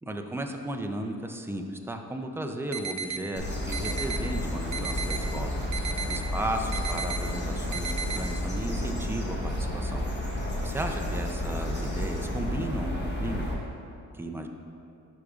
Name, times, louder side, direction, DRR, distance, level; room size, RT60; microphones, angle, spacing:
voice 1, 0.0-10.0 10.6-13.5 14.1-14.5, right 1 dB, 10° right, 4 dB, 0.3 m, -35 dB
sound 1, 2.7-3.2 3.7-4.2 4.7-5.2 5.7-6.2 6.7-7.2 7.7-8.2, right 6 dB, 65° right, 0.5 m, -34 dB
sound 2, 3.4-13.5, left 1 dB, 35° left, 1.0 m, -31 dB
11.5 x 4.9 x 2.4 m, 2.6 s
wide cardioid pair, 140°, 31 cm